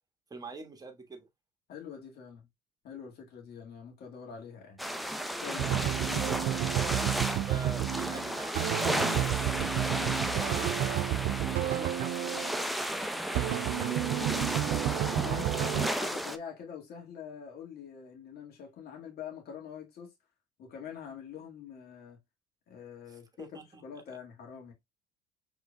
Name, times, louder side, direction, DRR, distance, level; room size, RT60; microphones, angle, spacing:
voice 1, 0.3-1.3 6.9-10.2 10.5-10.8 11.4-12.3 12.6-14.3 23.1-23.8, right 3 dB, 20° right, 1.6 m, -45 dB
voice 2, 1.7-2.5 2.8-4.8 5.4-5.7 6.0-6.3 15.2-20.1 20.6-22.2 22.7-23.5 23.8-24.7, left 7 dB, 55° left, 1.9 m, -44 dB
sound 1, 4.8-16.4, equal, ahead, 0.6 m, -34 dB
sound 2, 5.6-12.6 13.3-15.9, right 14 dB, 60° right, 0.4 m, -31 dB
4.8 x 3.6 x 2.3 m
hypercardioid pair, 70°, 19 cm